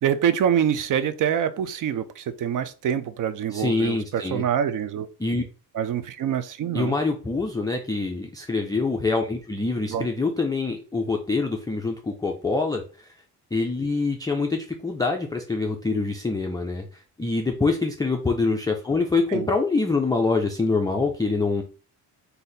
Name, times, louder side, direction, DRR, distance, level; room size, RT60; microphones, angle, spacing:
voice 1, 0.0-5.1 5.7-6.9 9.9-10.1 19.3-19.5, right 9 dB, 50° right, 0.5 m, -25 dB
voice 2, 3.5-4.4 5.2-5.4 6.7-13.1 13.5-21.6, left 3 dB, 10° left, 0.3 m, -25 dB
4.0 x 2.7 x 3.9 m
cardioid pair, 130°, 41 cm